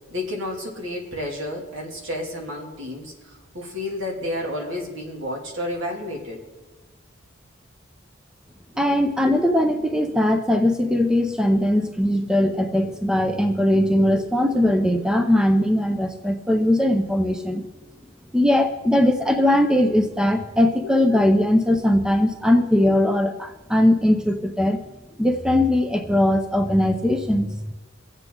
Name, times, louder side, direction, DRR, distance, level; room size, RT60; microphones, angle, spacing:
voice 1, 0.1-6.4 20.8-20.9, left 1 dB, 75° right, 0 dB, 2.7 m, -31 dB
voice 2, 8.8-17.6 18.3-24.8 25.2-27.7, left 1 dB, 5° right, 5 dB, 0.6 m, -20 dB
24.0 x 8.1 x 3.8 m, 1.2 s
head